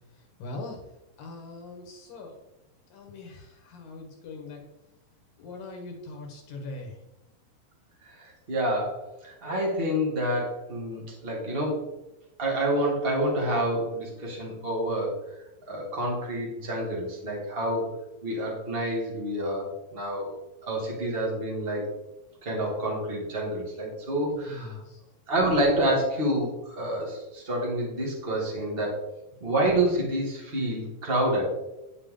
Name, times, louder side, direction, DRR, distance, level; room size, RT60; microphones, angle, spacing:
voice 1, 0.1-0.8 1.2-2.4 2.9-4.6 5.4-7.0 24.3-25.0, left 2 dB, 65° left, 2 dB, 2.7 m, -41 dB
voice 2, 8.0-11.9 12.4-15.2 15.7-17.9 18.2-20.3 20.6-21.9 22.4-24.7 25.3-29.0 29.4-31.5, right 1 dB, 20° right, -2 dB, 1.5 m, -28 dB
9.4 x 6.9 x 3.8 m, 0.97 s
omnidirectional pair, 4.8 m